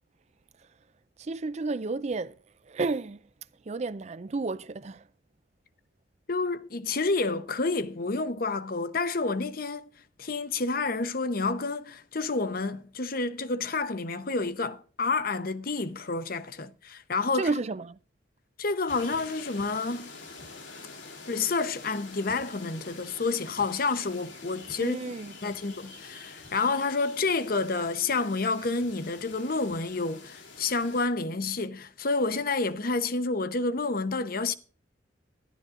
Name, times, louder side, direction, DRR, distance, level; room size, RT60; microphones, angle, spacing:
voice 1, 1.2-2.3 2.7-3.2 3.7-5.0 17.3-18.0 24.8-25.3, right 3 dB, 35° right, 0.4 m, -31 dB
voice 2, 6.3-9.9 10.2-17.6 18.6-20.1 21.3-25.0 25.4-34.5, left 3 dB, 50° left, 0.8 m, -29 dB
sound 1, 18.9-31.1, left 4 dB, 85° left, 3.0 m, -46 dB
12.0 x 11.5 x 3.7 m
head